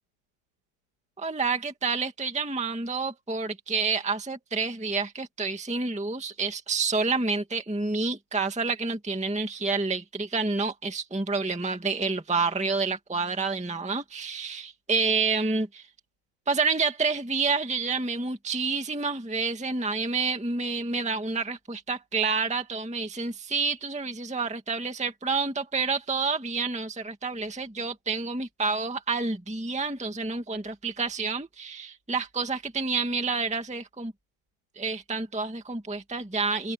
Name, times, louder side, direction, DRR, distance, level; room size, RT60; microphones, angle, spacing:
voice 1, 1.2-15.9 16.5-34.1 34.7-36.7, right 4 dB, 5° right, 1.7 m, -29 dB
omnidirectional pair, 2.3 m